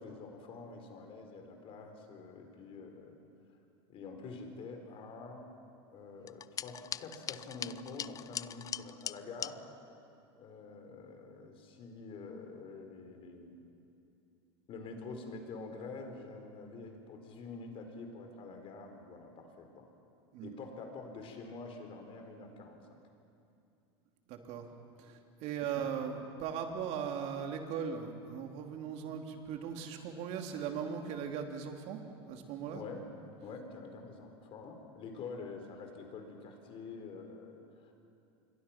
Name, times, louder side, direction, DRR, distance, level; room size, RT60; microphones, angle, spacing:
voice 1, 0.0-3.2 3.9-5.5 5.9-9.6 10.4-13.6 14.7-19.9 20.4-23.0 32.7-33.0 33.4-37.9, left 4 dB, 40° left, 4 dB, 4.4 m, -47 dB
sound 1, 6.3-9.5, left 9 dB, 25° left, 0.4 m, -41 dB
voice 2, 24.3-24.6 25.0-32.0 32.3-32.8, right 7 dB, 55° right, 3 dB, 3.0 m, -38 dB
27.5 x 22.5 x 5.9 m, 2.6 s
supercardioid pair, 110°, 14 cm